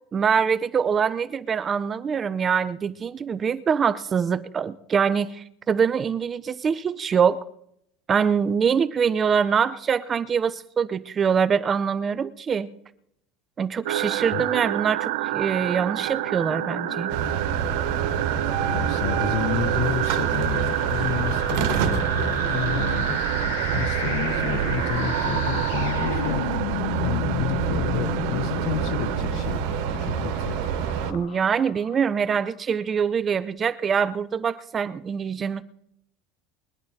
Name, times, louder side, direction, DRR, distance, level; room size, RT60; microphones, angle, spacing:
voice 1, 0.1-7.4 8.1-12.7 13.6-17.1 31.1-35.6, right 6 dB, 20° right, 0.4 m, -24 dB
sound 1, 13.9-29.2, right 16 dB, 80° right, 0.7 m, -29 dB
sound 2, 16.1-32.5, left 16 dB, 85° left, 0.5 m, -35 dB
sound 3, 17.1-31.1, right 8 dB, 55° right, 1.3 m, -27 dB
voice 2, 18.6-23.2 23.7-26.5 27.0-30.6, left 12 dB, 45° left, 0.7 m, -30 dB
21.5 x 11.0 x 4.1 m
cardioid pair, 180°, 0 cm